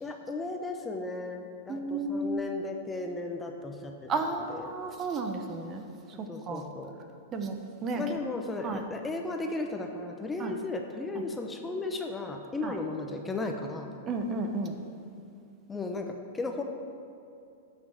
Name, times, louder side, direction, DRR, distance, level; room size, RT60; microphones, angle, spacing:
voice 1, 0.0-4.1 4.5-4.7 6.3-6.9 8.0-13.9 15.7-16.6, left 2 dB, 15° left, 3 dB, 0.9 m, -35 dB
voice 2, 1.7-2.4 4.1-5.8 6.5-6.6 7.3-7.5 7.8-8.0 8.6-8.8 10.4-10.5 12.6-12.7 14.1-14.7, right 3 dB, 30° right, 5 dB, 1.0 m, -32 dB
9.1 x 6.3 x 6.6 m, 2.6 s
hypercardioid pair, 115°, 0 cm